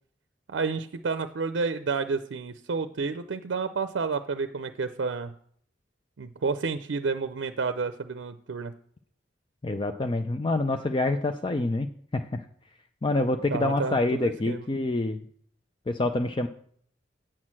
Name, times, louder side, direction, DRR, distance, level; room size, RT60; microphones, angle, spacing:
voice 1, 0.5-5.3 6.2-8.7 13.5-14.7, right 4 dB, 85° right, 10 dB, 0.5 m, -30 dB
voice 2, 9.6-12.4 13.0-15.2 15.9-16.5, left 2 dB, 25° left, 7 dB, 0.4 m, -27 dB
8.8 x 6.3 x 7.4 m, 0.62 s
head